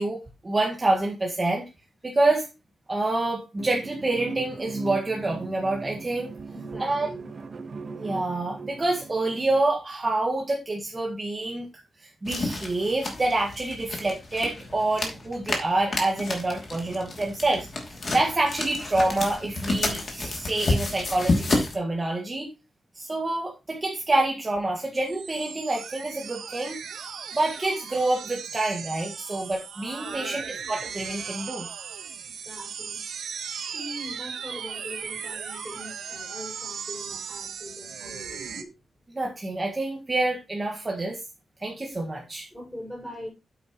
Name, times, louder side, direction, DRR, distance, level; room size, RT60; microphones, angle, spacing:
voice 1, 0.0-1.7 2.0-2.5 2.9-6.3 6.8-7.1 7.9-22.5 23.0-26.8 27.3-31.7 39.1-41.2 41.6-42.5, right 2 dB, 25° right, 1.8 m, -27 dB
sound 1, 3.6-9.6, right 4 dB, 40° right, 1.3 m, -39 dB
voice 2, 6.5-7.3 30.1-30.5 32.4-33.0 33.7-38.7 42.5-43.3, equal, 10° left, 5.9 m, -42 dB
sound 2, 12.3-21.8, left 2 dB, 40° left, 2.8 m, -30 dB
sound 3, 25.1-38.6, right 7 dB, 90° right, 1.2 m, -37 dB
9.0 x 8.8 x 3.1 m
wide cardioid pair, 140°, 0 cm